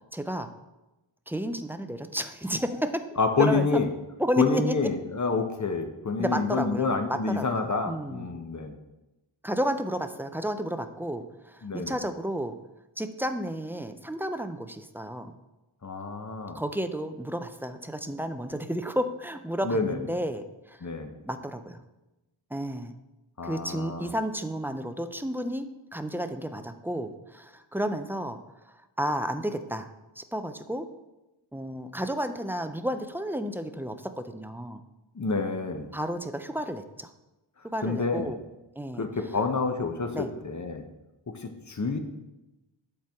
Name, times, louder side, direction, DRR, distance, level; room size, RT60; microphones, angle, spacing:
voice 1, 0.1-0.5 1.3-3.1 3.4-3.7 4.2-4.8 6.2-8.3 9.4-12.6 13.0-15.3 16.5-20.9 21.3-21.8 22.5-22.9 23.4-28.4 28.7-29.9 30.2-30.9 31.5-34.8 35.9-37.1 37.6-38.4 38.8-39.1 40.1-40.3, equal, 5° right, 9 dB, 0.4 m, -32 dB
voice 2, 3.2-3.9 4.4-8.7 11.6-12.0 15.8-16.6 19.6-20.0 20.8-21.1 23.4-24.1 35.1-35.9 37.8-38.3 39.0-40.8 41.3-42.0, left 4 dB, 35° left, 5 dB, 0.8 m, -28 dB
7.5 x 4.4 x 3.5 m, 1.0 s
wide cardioid pair, 45°, 48 cm